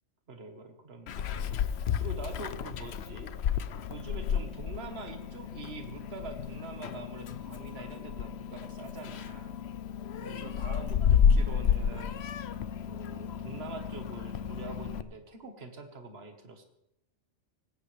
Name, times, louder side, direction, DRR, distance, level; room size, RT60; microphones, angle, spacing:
voice 1, 0.3-1.5 2.0-3.4 3.9-9.5 10.2-12.2 12.9-16.6, right 3 dB, 55° right, 6 dB, 1.7 m, -45 dB
Meow, 1.1-15.0, left 7 dB, 65° left, 0.9 m, -31 dB
19.5 x 16.5 x 3.4 m, 0.81 s
omnidirectional pair, 1.2 m